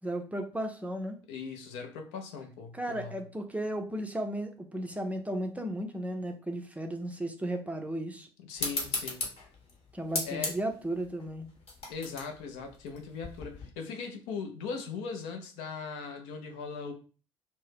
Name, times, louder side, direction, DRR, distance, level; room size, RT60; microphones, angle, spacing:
voice 1, 0.0-1.2 2.7-8.3 9.9-11.5, right 1 dB, 10° right, 4 dB, 0.5 m, -35 dB
voice 2, 1.3-3.2 8.4-9.2 10.2-10.6 11.9-16.9, left 5 dB, 65° left, 4 dB, 0.5 m, -39 dB
sound 1, 8.6-13.7, left 3 dB, 50° left, 1.0 m, -37 dB
2.6 x 2.1 x 3.4 m, 0.37 s
figure-of-eight pair, 50°, 14 cm